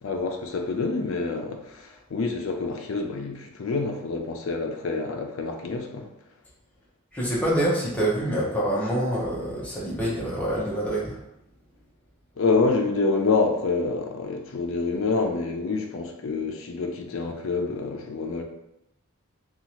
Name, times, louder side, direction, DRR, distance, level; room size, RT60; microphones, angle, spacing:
voice 1, 0.0-6.1 12.4-18.4, left 3 dB, 70° left, 4 dB, 0.4 m, -27 dB
voice 2, 7.1-11.2, right 1 dB, 5° left, -6 dB, 0.7 m, -26 dB
2.7 x 2.4 x 2.9 m, 0.84 s
head